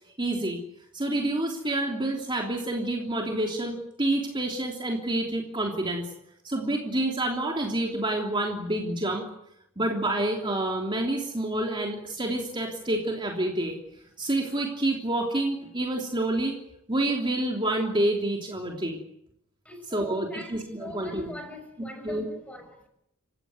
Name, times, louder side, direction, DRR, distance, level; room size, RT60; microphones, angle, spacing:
voice 1, 0.2-0.6 0.9-6.0 6.4-9.3 9.8-13.8 14.2-16.6 16.9-19.0 19.9-21.3 22.0-22.2, right 1 dB, 25° right, 3.2 m, -28 dB
voice 2, 19.6-22.9, left 1 dB, 5° left, 5.8 m, -42 dB
29.0 x 16.0 x 9.5 m
head